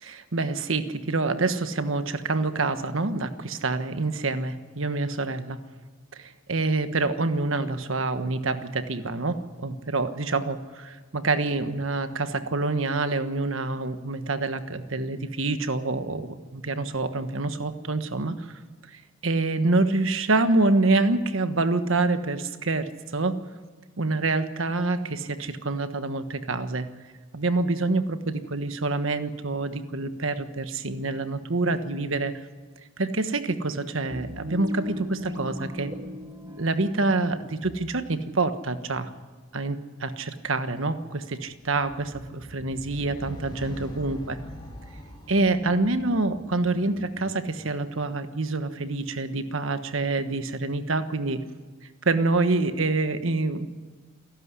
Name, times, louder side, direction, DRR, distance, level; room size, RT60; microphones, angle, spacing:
voice 1, 0.0-5.6 6.1-18.6 18.9-23.4 24.0-26.9 27.3-32.3 33.0-35.9 36.6-39.1 39.5-44.4 45.3-51.4 52.0-53.7, right 3 dB, 80° right, 9 dB, 1.3 m, -26 dB
sound 1, 34.1-38.4, left 1 dB, 20° right, 2.1 m, -39 dB
sound 2, 41.6-48.1, equal, 25° left, 3.2 m, -44 dB
28.0 x 12.0 x 9.8 m, 1.4 s
head